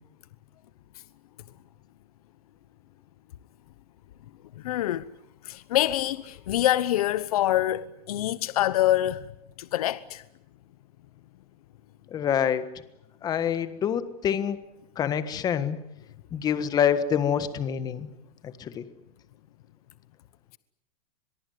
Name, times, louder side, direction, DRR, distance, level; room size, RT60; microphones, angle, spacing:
voice 1, 4.6-5.1 5.4-9.3 9.6-10.2, left 13 dB, 75° left, 1.0 m, -25 dB
voice 2, 12.1-12.7 13.2-14.6 15.0-15.8 16.3-18.1 18.4-18.8, left 8 dB, 20° left, 1.5 m, -26 dB
23.0 x 23.0 x 9.4 m
supercardioid pair, 160°, 19 cm